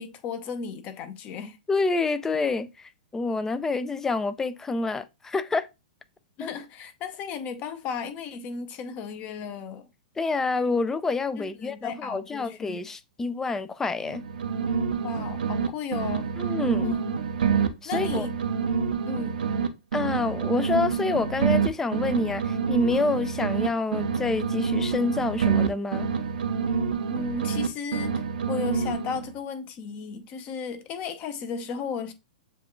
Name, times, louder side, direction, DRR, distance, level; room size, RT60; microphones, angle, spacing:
voice 1, 0.0-1.6 6.4-9.9 11.4-12.8 15.0-17.2 17.8-18.4 19.1-19.4 27.1-32.1, left 6 dB, 30° left, 0.8 m, -35 dB
voice 2, 1.7-5.7 6.4-6.5 10.2-14.2 16.4-16.9 17.8-18.3 19.9-26.1, left 3 dB, 10° left, 0.4 m, -27 dB
sound 1, 14.0-15.7 15.9-19.7 19.9-23.7 23.9-27.7 27.9-29.3, right 6 dB, 85° right, 0.6 m, -27 dB
7.1 x 2.4 x 3.0 m
hypercardioid pair, 135°, 5 cm